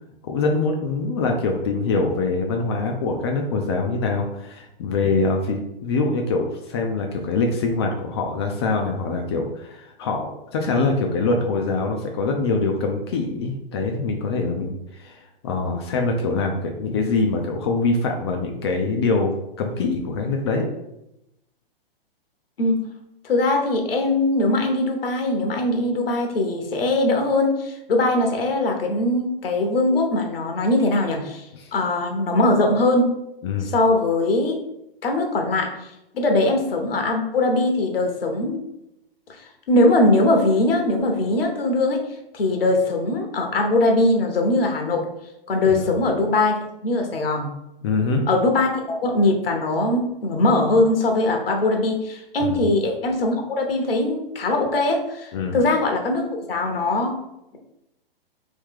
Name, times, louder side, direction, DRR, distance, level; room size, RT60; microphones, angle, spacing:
voice 1, 0.2-20.7 31.5-31.7 33.4-33.7 45.7-45.8 47.8-48.3 52.4-52.7 55.3-55.6, left 3 dB, 30° left, 2 dB, 0.3 m, -24 dB
voice 2, 23.2-33.1 33.6-34.5 35.0-35.7 36.1-38.6 39.4-42.0 42.3-45.0 45.5-46.5 46.8-47.5 48.3-57.1, left 2 dB, 75° left, 3 dB, 1.0 m, -21 dB
3.1 x 2.7 x 3.6 m, 0.86 s
hypercardioid pair, 130°, 29 cm